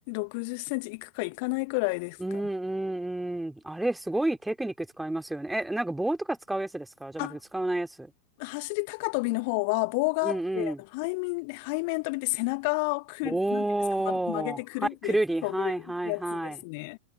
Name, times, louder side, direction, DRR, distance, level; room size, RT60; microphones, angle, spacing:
voice 1, 0.0-2.4 7.2-7.4 8.4-13.6 14.1-15.2 15.4-17.0, left 30 dB, 45° left, 1.4 m, -31 dB
voice 2, 2.2-8.1 10.2-10.8 13.2-14.6 15.0-16.6, right 1 dB, 5° right, 2.8 m, -30 dB
figure-of-eight pair, 90°, 0 cm